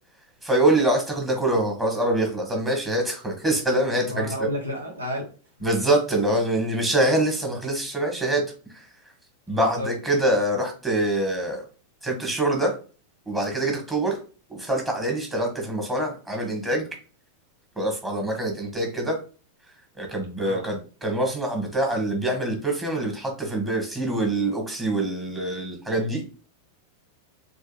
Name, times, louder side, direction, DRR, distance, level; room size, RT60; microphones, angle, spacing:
voice 1, 0.4-4.5 5.6-8.4 8.7-8.9 9.5-11.6 12.0-12.7 13.2-14.2 14.5-16.9 17.7-19.2 20.0-26.2, right 1 dB, 10° right, 1 dB, 1.5 m, -25 dB
voice 2, 4.1-5.2 5.6-5.7 9.5-9.9 20.4-20.6, equal, 75° right, 1 dB, 1.0 m, -31 dB
4.4 x 3.2 x 2.3 m, 0.37 s
figure-of-eight pair, 90°, 0 cm